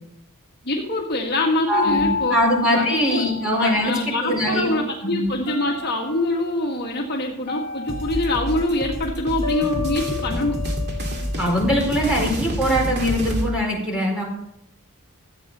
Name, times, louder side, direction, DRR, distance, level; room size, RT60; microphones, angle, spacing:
voice 1, 0.6-2.3 2.7-3.3 3.6-10.6, left 1 dB, 45° left, 0 dB, 1.7 m, -24 dB
sound 1, 1.7-4.1 5.5-6.5 7.5-8.8 9.4-11.8, left 5 dB, 30° left, 2.9 m, -30 dB
voice 2, 1.7-4.8 5.0-5.3 11.4-14.2, equal, 5° right, -3 dB, 4.3 m, -22 dB
sound 2, 7.9-13.5, equal, 50° right, 2.0 m, -28 dB
13.5 x 8.3 x 5.5 m, 0.83 s
head